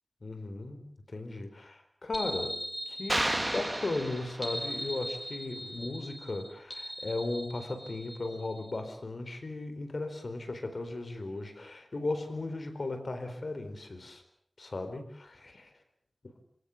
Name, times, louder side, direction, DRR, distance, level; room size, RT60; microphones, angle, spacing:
voice 1, 0.2-0.8 1.1-2.6 2.9-14.2 14.6-15.7, left 2 dB, 80° left, 7 dB, 4.2 m, -36 dB
sound 1, 2.1-8.8, equal, 10° left, 3.9 m, -40 dB
sound 2, 3.1-4.8, right 1 dB, 30° right, 1.9 m, -32 dB
28.0 x 17.5 x 7.2 m, 0.64 s
wide cardioid pair, 60°, 0 cm